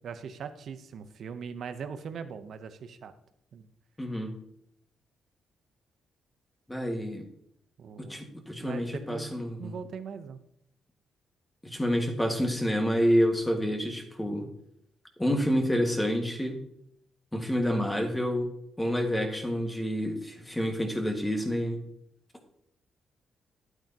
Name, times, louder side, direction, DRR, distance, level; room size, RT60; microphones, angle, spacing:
voice 1, 0.0-3.1 3.5-3.7 7.8-8.2 8.6-9.3 9.6-10.4, right 6 dB, 65° right, 10 dB, 0.7 m, -40 dB
voice 2, 4.0-4.3 6.7-7.2 8.0-9.7 11.6-14.4 15.2-16.6 17.3-18.5 18.8-21.8, equal, 10° left, 3 dB, 1.8 m, -28 dB
11.5 x 9.0 x 2.9 m, 0.73 s
cardioid pair, 100°, 0 cm